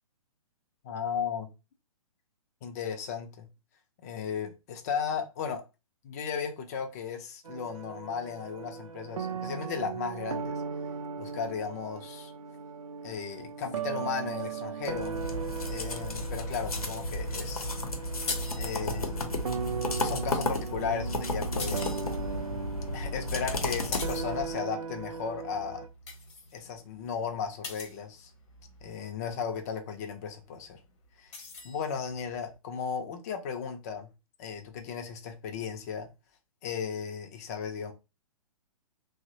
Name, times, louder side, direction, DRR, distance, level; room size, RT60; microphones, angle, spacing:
voice 1, 0.8-1.5 2.6-3.5 4.0-5.6 6.0-10.6 11.2-12.3 13.0-15.2 15.7-17.7 18.6-19.4 20.0-22.2 22.9-25.8 26.5-28.3 28.8-30.8 31.2-31.3 31.6-34.1 34.4-36.1 36.6-37.9, left 6 dB, 30° left, 0.4 m, -35 dB
sound 1, 7.4-25.9, right 6 dB, 70° right, 0.4 m, -38 dB
sound 2, 14.9-24.6, left 1 dB, 80° left, 0.7 m, -33 dB
sound 3, 18.1-19.4 20.8-28.9 30.2-32.6, left 4 dB, 50° left, 0.9 m, -44 dB
2.9 x 2.0 x 2.6 m
figure-of-eight pair, 120°, 18 cm